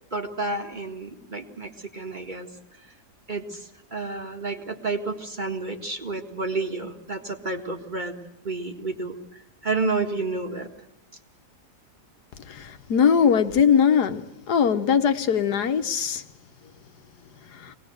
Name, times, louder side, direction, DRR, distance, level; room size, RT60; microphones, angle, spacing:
voice 1, 0.1-2.5 3.3-8.2 8.4-9.2 9.6-10.7, right 3 dB, 30° right, 1.9 m, -30 dB
voice 2, 12.9-16.2, left 7 dB, 80° left, 1.7 m, -20 dB
24.0 x 19.0 x 7.9 m
omnidirectional pair, 1.7 m